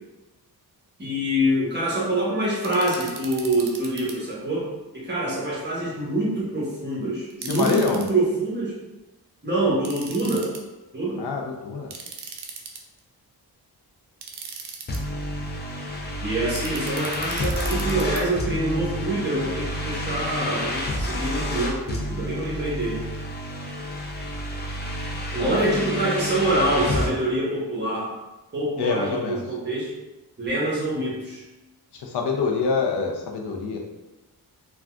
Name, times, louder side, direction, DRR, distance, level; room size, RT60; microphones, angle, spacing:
voice 1, 1.0-4.7 4.9-8.7 9.4-10.5 10.9-11.2 16.2-23.0 25.3-28.1 28.5-29.9 30.4-31.4, right 1 dB, 25° right, -5 dB, 1.0 m, -25 dB
sound 1, 2.6-4.1 7.3-8.1 9.8-10.6 11.9-13.0 14.2-15.0 16.6-18.2, right 5 dB, 80° right, 0.5 m, -38 dB
voice 2, 7.4-8.0 11.2-11.9 25.4-26.0 28.8-29.4 31.9-33.8, left 4 dB, 80° left, 2 dB, 0.6 m, -26 dB
sound 2, 14.9-27.1, left 1 dB, 25° left, 0.4 m, -29 dB
3.6 x 2.3 x 2.3 m, 1.1 s
wide cardioid pair, 115°, 40 cm